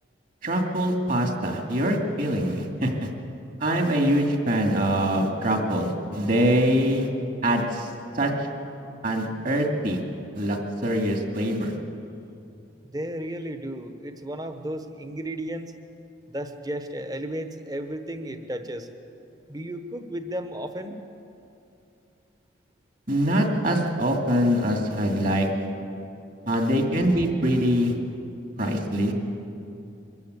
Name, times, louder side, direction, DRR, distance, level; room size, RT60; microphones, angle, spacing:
voice 1, 0.4-2.9 3.6-7.1 7.4-8.3 9.0-10.0 10.3-11.7 23.1-25.5 26.5-27.9 28.6-29.1, equal, 45° right, 3 dB, 2.4 m, -24 dB
voice 2, 12.8-15.7 16.3-18.9 19.5-21.0, right 1 dB, 20° right, 8 dB, 1.1 m, -34 dB
23.5 x 14.5 x 8.2 m, 2.7 s
head